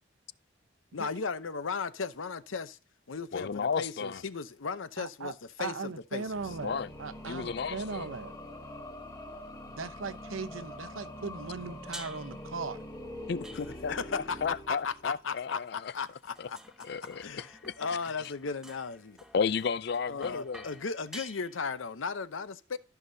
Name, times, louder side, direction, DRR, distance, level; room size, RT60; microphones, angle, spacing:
voice 1, 0.9-2.8 3.1-5.3 5.6-6.5 13.9-14.4 14.7-16.6 17.2-19.2 20.1-22.8, left 5 dB, 80° left, 0.7 m, -36 dB
voice 2, 3.3-4.2 6.6-6.9 7.2-8.1 13.3-15.9 16.4-16.5 16.8-17.7 19.3-20.6, left 6 dB, 55° left, 0.4 m, -33 dB
voice 3, 5.0-5.3 5.6-8.3 9.7-12.8, right 4 dB, 85° right, 0.8 m, -38 dB
sound 1, 6.3-15.3, left 1 dB, 20° left, 1.1 m, -44 dB
sound 2, 11.9-12.5 13.4-14.1 15.1-21.9, equal, 5° right, 0.7 m, -50 dB
14.5 x 5.9 x 2.7 m
head